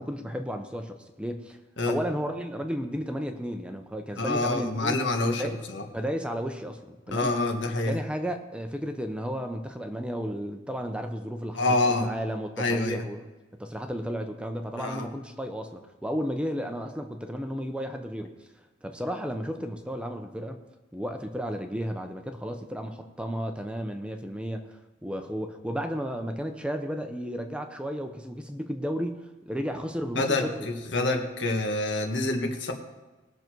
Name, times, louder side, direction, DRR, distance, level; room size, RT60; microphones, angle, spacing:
voice 1, 0.0-1.6 1.9-5.0 5.4-5.6 5.9-7.3 7.9-13.3 13.6-20.6 20.9-30.7, equal, 5° right, 5 dB, 0.7 m, -33 dB
voice 2, 4.2-5.4 5.7-5.8 7.1-8.0 11.6-12.1 12.6-13.0 14.8-15.1 30.2-30.4 30.9-32.7, left 2 dB, 70° left, 3 dB, 1.7 m, -26 dB
20.0 x 6.8 x 4.6 m, 1.2 s
head